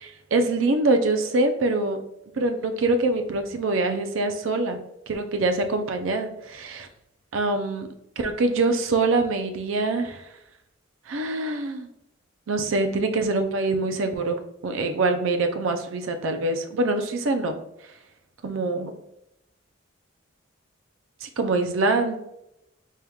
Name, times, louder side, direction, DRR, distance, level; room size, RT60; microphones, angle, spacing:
voice 1, 0.3-2.0 2.4-4.8 5.1-6.9 7.3-7.9 8.2-10.2 11.1-11.9 12.5-17.6 18.4-19.0 21.2-22.2, right 2 dB, 75° right, 6 dB, 0.5 m, -24 dB
4.5 x 3.5 x 2.3 m, 0.82 s
head